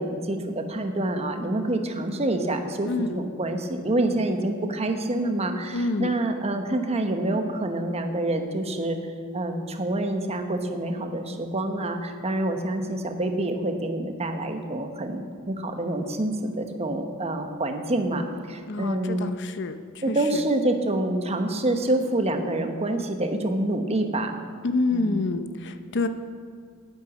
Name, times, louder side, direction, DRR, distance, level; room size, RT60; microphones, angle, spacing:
voice 1, 0.0-9.0 9.3-19.3 20.0-24.4 24.9-25.2, right 1 dB, 30° right, 5 dB, 1.1 m, -27 dB
voice 2, 2.8-3.2 5.7-6.2 18.7-20.4 24.6-26.1, left 3 dB, 55° left, 10 dB, 0.7 m, -28 dB
10.0 x 9.1 x 8.3 m, 2.2 s
head